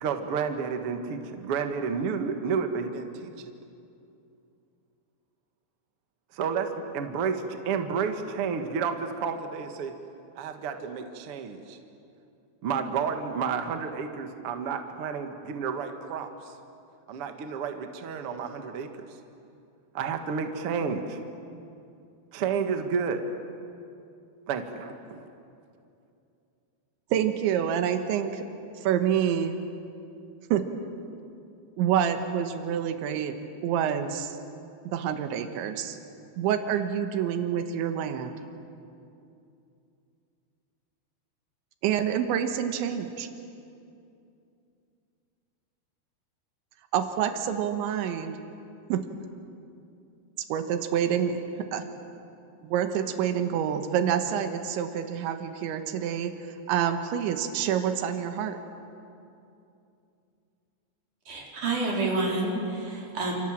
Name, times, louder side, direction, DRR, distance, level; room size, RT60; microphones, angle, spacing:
voice 1, 0.0-3.5 6.3-9.9 10.4-11.8 12.6-16.5 17.1-19.1 19.9-21.2 22.3-23.2 24.5-25.3, right 6 dB, 70° right, 6 dB, 1.3 m, -31 dB
voice 2, 27.1-28.4 28.8-29.6 30.5-30.6 31.8-33.4 33.6-34.4 34.9-36.0 36.4-38.4 41.8-43.3 46.9-48.4 48.9-49.1 50.5-51.4 51.7-51.9 52.6-56.3 56.7-58.6, right 9 dB, 90° right, 7 dB, 3.7 m, -27 dB
voice 3, 61.3-63.3, right 2 dB, 45° right, -2 dB, 5.8 m, -28 dB
28.5 x 27.5 x 7.6 m, 2.6 s
omnidirectional pair, 5.2 m